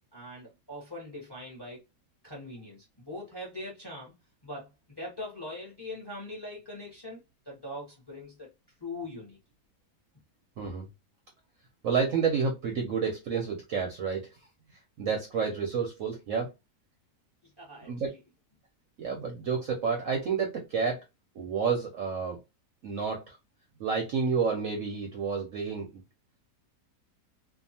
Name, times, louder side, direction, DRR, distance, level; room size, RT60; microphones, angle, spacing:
voice 1, 0.1-1.8 2.2-4.1 4.4-8.5 8.8-9.4 17.4-18.2, left 1 dB, 20° left, 0.6 m, -42 dB
voice 2, 10.6-10.9 11.8-14.2 15.0-16.5 17.8-18.1 19.0-21.0 21.3-22.4 22.8-23.4 23.8-25.9, right 5 dB, 65° right, 0.8 m, -30 dB
2.7 x 2.3 x 2.6 m
omnidirectional pair, 1.9 m